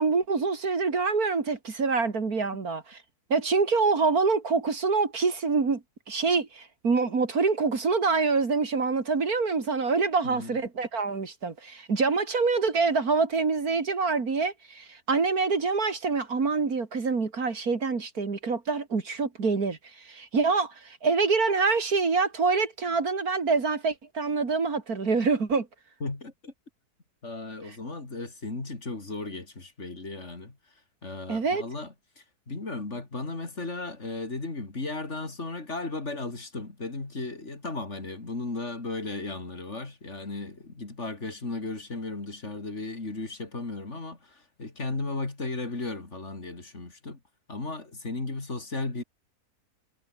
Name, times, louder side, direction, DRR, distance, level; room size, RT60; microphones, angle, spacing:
voice 1, 0.0-3.0 3.3-25.7 31.3-31.6, right 4 dB, 70° right, 3.0 m, -26 dB
voice 2, 26.0-26.5 27.2-30.6 31.0-47.2 47.5-49.0, left 3 dB, 45° left, 3.8 m, -35 dB
omnidirectional pair, 1.6 m